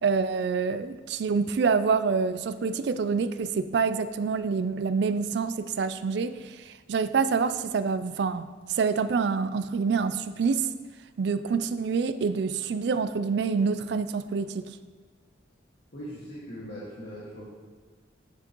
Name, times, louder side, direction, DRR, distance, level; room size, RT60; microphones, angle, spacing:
voice 1, 0.0-10.7 11.2-14.7, right 5 dB, 65° right, 13 dB, 0.3 m, -27 dB
voice 2, 15.9-17.5, equal, 65° left, -9 dB, 1.6 m, -40 dB
9.3 x 6.9 x 2.9 m, 1.5 s
head